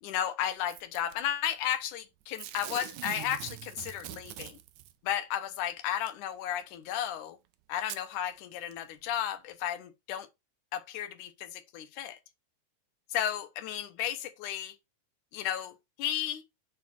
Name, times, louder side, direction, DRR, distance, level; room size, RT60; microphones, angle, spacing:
voice 1, 0.0-4.6 5.0-7.4 7.7-10.3 10.7-12.2 13.1-14.7 15.3-15.7 16.0-16.4, left 11 dB, 85° left, 2.4 m, -33 dB
Packing tape duct tape / Tearing, 0.7-1.1 2.3-4.9 6.1-6.2 7.1-7.2 7.8-8.0 8.7-8.8, right 14 dB, 90° right, 2.1 m, -42 dB
7.2 x 4.3 x 4.2 m
omnidirectional pair, 3.5 m